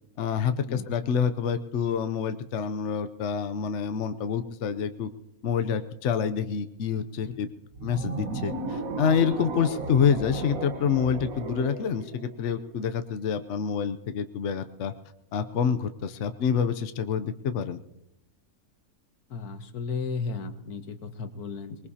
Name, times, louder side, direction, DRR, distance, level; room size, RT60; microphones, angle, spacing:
voice 1, 0.2-5.1 5.4-7.5 7.8-14.9 15.3-17.8, left 7 dB, 60° left, 9 dB, 0.9 m, -27 dB
sound 1, 7.7-13.0, right 4 dB, 65° right, 1.6 m, -35 dB
voice 2, 19.3-21.9, left 4 dB, 80° left, 8 dB, 1.6 m, -34 dB
24.5 x 20.0 x 2.8 m, 0.83 s
omnidirectional pair, 1.6 m